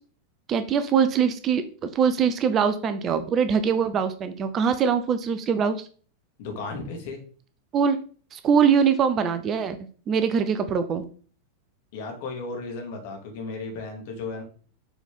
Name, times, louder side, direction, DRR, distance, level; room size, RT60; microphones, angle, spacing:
voice 1, 0.5-5.9 7.7-8.0 8.3-9.8 10.1-11.1, right 7 dB, 30° right, 10 dB, 0.6 m, -23 dB
voice 2, 6.4-7.2 11.9-14.4, left 3 dB, 50° left, 2 dB, 2.1 m, -34 dB
7.0 x 4.2 x 3.6 m, 0.41 s
figure-of-eight pair, 90°, 0 cm